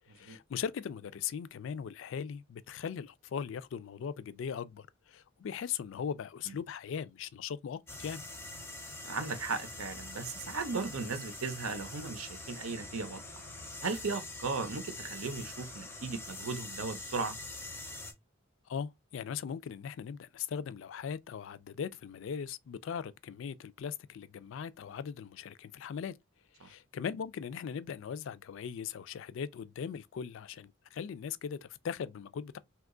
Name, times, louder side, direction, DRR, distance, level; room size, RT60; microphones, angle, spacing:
voice 1, 0.1-8.2 18.7-26.1 26.6-32.6, left 7 dB, 65° left, 0.3 m, -39 dB
sound 1, 7.9-18.1, left 2 dB, 10° left, 0.5 m, -44 dB
voice 2, 9.0-13.2 13.8-17.4 26.6-26.7, right 4 dB, 85° right, 0.7 m, -36 dB
2.9 x 2.3 x 3.7 m
head